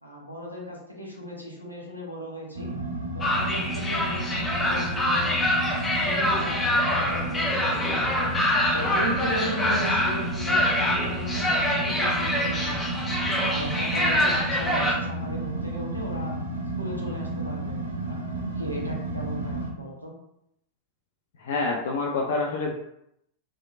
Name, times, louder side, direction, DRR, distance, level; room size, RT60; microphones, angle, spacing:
voice 1, 0.0-2.7 3.1-8.3 8.7-13.0 13.5-16.3 16.8-20.1, equal, 90° left, -3 dB, 0.7 m, -36 dB
sound 1, 2.5-19.7, right 1 dB, 80° right, 0.5 m, -32 dB
sound 2, 3.2-14.9, left 1 dB, 15° left, 0.6 m, -25 dB
voice 2, 21.4-22.7, left 3 dB, 60° left, 0 dB, 0.3 m, -27 dB
2.8 x 2.3 x 2.4 m, 0.77 s
figure-of-eight pair, 90°, 0 cm